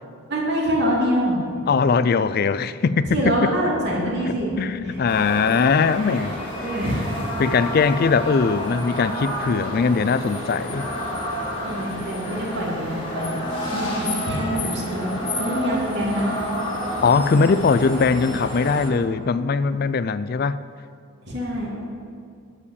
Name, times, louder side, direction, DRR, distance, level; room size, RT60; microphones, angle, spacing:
voice 1, 0.3-1.4 3.1-4.6 4.8-5.2 5.9-7.3 11.6-13.4 13.7-15.1 15.4-16.4 21.2-21.9, equal, 50° right, 2.7 m, -25 dB
voice 2, 1.7-3.4 4.6-6.4 7.4-10.9 17.0-20.6, left 5 dB, 45° left, 0.3 m, -20 dB
sound 1, 5.1-18.9, equal, 25° left, 2.3 m, -29 dB
13.5 x 5.0 x 8.4 m
head